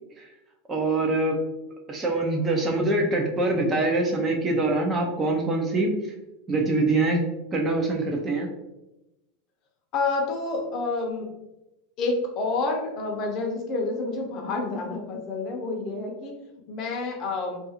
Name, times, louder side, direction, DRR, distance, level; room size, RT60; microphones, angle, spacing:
voice 1, 0.7-1.4 1.9-5.9 6.5-7.2 7.5-8.5, right 2 dB, 15° right, 1 dB, 0.4 m, -24 dB
voice 2, 9.9-11.3 12.0-16.3 16.7-17.6, left 3 dB, 35° left, 1 dB, 0.5 m, -28 dB
2.3 x 2.3 x 2.8 m, 0.95 s
supercardioid pair, 160°, 0 cm